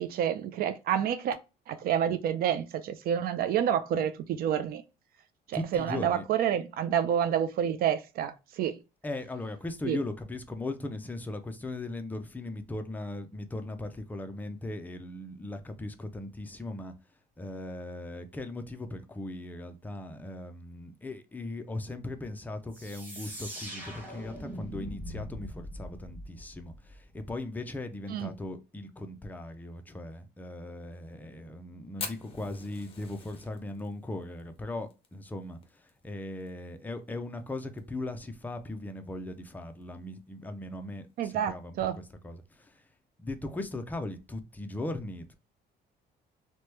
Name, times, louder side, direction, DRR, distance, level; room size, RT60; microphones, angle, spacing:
voice 1, 0.0-1.4 1.7-4.8 5.5-8.8 9.9-10.0 28.1-28.3 41.2-42.0, right 9 dB, 60° right, 0.4 m, -28 dB
voice 2, 5.5-6.3 9.0-16.9 17.4-42.8 43.2-45.3, left 2 dB, 10° left, 0.4 m, -38 dB
sound 1, 22.7-27.3, equal, 10° right, 1.0 m, -42 dB
Fire, 32.0-36.5 36.7-36.8 37.1-37.2 37.6-38.0 38.5-38.6 39.7-39.8, left 4 dB, 35° left, 0.7 m, -43 dB
2.9 x 2.2 x 3.1 m
cardioid pair, 110°, 17 cm